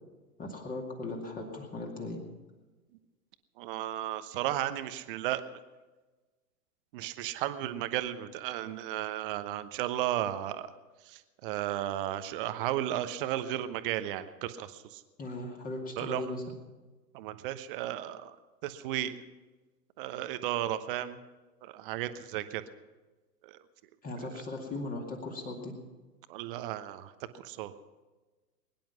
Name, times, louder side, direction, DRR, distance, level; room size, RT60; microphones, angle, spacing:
voice 1, 0.4-2.2 15.2-16.5 24.0-25.7, left 2 dB, 15° left, 1 dB, 2.4 m, -38 dB
voice 2, 3.6-5.4 6.9-10.7 11.0-15.0 16.0-16.2 17.1-18.4 18.6-19.2 20.0-21.2 21.6-22.6 23.4-23.6 26.3-27.7, right 13 dB, 35° right, 12 dB, 1.0 m, -34 dB
22.0 x 10.5 x 5.8 m, 1.2 s
figure-of-eight pair, 110°, 48 cm